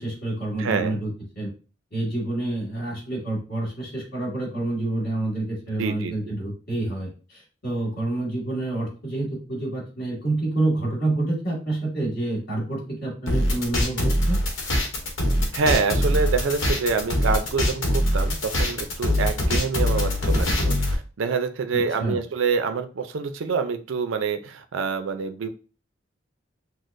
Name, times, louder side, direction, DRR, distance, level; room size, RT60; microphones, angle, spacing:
voice 1, 0.0-1.5 1.9-14.4 21.7-22.2, right 2 dB, 55° left, -2 dB, 1.9 m, -28 dB
voice 2, 0.6-1.0 5.8-6.1 15.5-25.5, right 5 dB, 80° right, 8 dB, 0.4 m, -26 dB
sound 1, 13.3-20.9, left 1 dB, 85° left, 0.9 m, -23 dB
6.2 x 2.1 x 2.5 m, 0.36 s
head